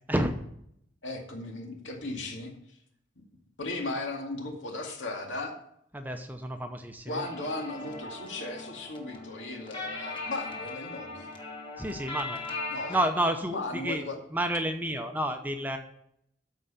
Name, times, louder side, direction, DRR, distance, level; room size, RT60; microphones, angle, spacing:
voice 1, 1.0-2.5 3.6-5.6 7.1-11.3 12.7-13.1 13.5-14.2, left 2 dB, 80° left, 1 dB, 2.2 m, -36 dB
voice 2, 5.9-7.2 11.8-12.4 12.9-14.0 14.3-15.8, right 1 dB, 10° right, 6 dB, 0.8 m, -30 dB
sound 1, 7.1-13.0, left 3 dB, 25° left, 1.5 m, -39 dB
13.0 x 4.9 x 5.7 m, 0.72 s
head